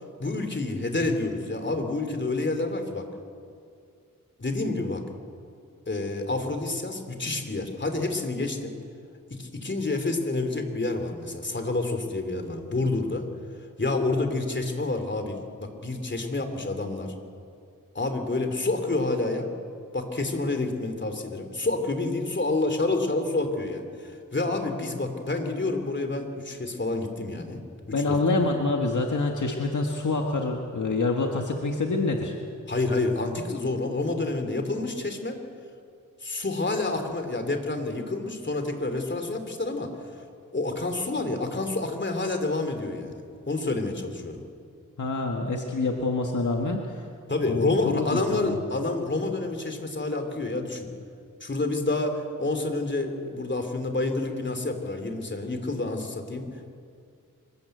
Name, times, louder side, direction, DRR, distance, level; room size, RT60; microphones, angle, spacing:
voice 1, 0.2-3.1 4.4-5.0 5.9-8.8 9.3-13.3 13.8-17.1 17.9-19.5 19.9-27.6 28.1-28.2 32.7-35.4 36.2-39.9 40.1-40.2 40.5-44.4 47.3-50.9 51.4-56.7, left 2 dB, 35° left, 6 dB, 3.0 m, -28 dB
voice 2, 27.9-32.3 45.0-47.0 47.5-48.6, left 3 dB, 60° left, 2 dB, 1.8 m, -26 dB
26.0 x 13.5 x 8.0 m, 2.3 s
cardioid pair, 60°, 33 cm